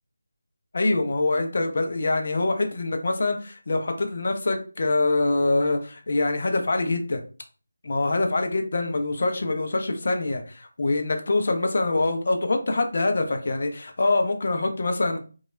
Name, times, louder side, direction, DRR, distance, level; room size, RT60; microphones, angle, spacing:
voice 1, 0.7-7.2 7.8-15.2, left 2 dB, 55° left, 5 dB, 0.5 m, -24 dB
2.2 x 2.1 x 3.0 m, 0.36 s
figure-of-eight pair, 165°, 0 cm